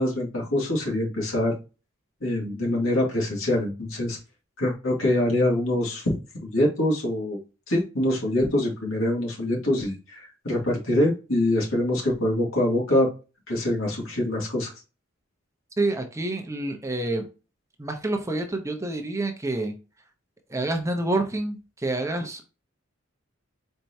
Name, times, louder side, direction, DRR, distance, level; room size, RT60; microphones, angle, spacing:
voice 1, 0.0-1.6 2.2-4.2 4.6-6.1 6.5-7.4 7.7-13.1 13.5-14.7, left 1 dB, 80° left, -2 dB, 2.0 m, -24 dB
voice 2, 15.8-17.3 17.8-19.7 20.5-22.4, right 2 dB, 15° right, 4 dB, 0.7 m, -28 dB
4.5 x 4.4 x 2.7 m, 0.32 s
head